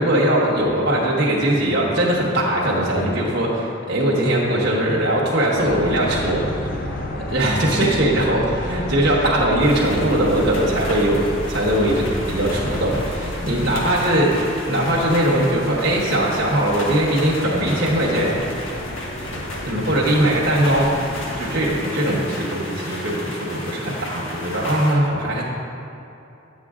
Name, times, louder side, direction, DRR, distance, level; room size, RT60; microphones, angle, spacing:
voice 1, 0.0-6.4 6.7-6.8 7.3-14.4 14.7-18.6 19.3-20.9 21.4-25.5, right 1 dB, 60° right, -5 dB, 1.2 m, -20 dB
sound 1, 5.5-21.7, left 1 dB, 45° left, 0.7 m, -33 dB
sound 2, 7.9-13.9, equal, 15° right, 0.5 m, -33 dB
sound 3, 9.6-24.9, left 1 dB, 80° left, 1.5 m, -34 dB
9.3 x 7.5 x 3.7 m, 2.8 s
head